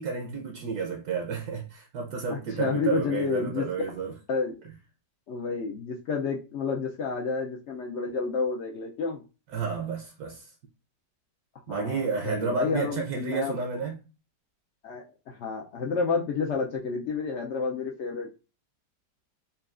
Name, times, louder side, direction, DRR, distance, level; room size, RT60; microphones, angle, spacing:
voice 1, 0.0-4.1 4.6-4.7 9.5-10.5 11.7-14.0, right 5 dB, 70° right, 1.1 m, -31 dB
voice 2, 2.3-3.7 4.3-4.5 5.3-9.2 11.7-13.6 14.8-18.4, left 5 dB, 75° left, 0.6 m, -30 dB
5.5 x 2.3 x 2.4 m
omnidirectional pair, 1.9 m